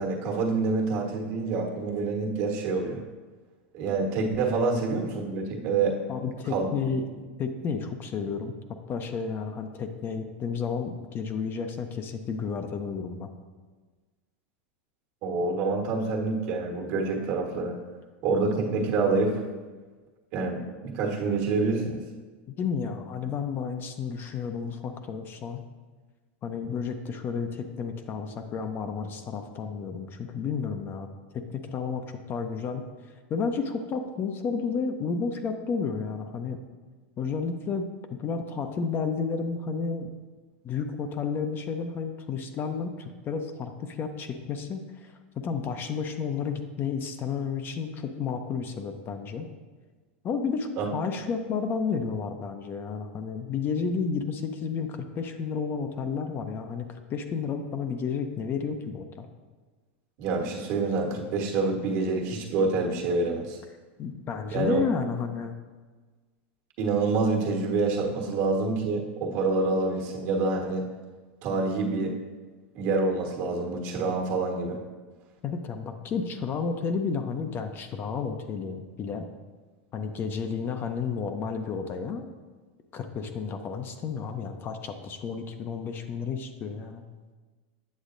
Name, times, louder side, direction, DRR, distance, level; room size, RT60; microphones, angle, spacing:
voice 1, 0.0-3.0 3.7-6.0 6.5-6.7 15.2-17.8 18.2-19.4 20.3-22.0 50.8-50.9 60.2-63.6 64.5-64.8 66.8-70.8 71.4-72.1 72.7-74.8, right 3 dB, 55° right, 0 dB, 1.3 m, -27 dB
voice 2, 6.1-7.1 7.4-13.3 22.5-25.6 26.4-31.1 31.3-32.8 33.3-36.6 37.2-37.9 38.2-40.1 40.6-49.5 50.2-59.3 64.0-65.6 75.4-79.3 79.9-82.3 82.9-87.0, left 5 dB, 35° left, 6 dB, 0.6 m, -31 dB
8.3 x 6.9 x 2.6 m, 1.4 s
supercardioid pair, 120°, 7 cm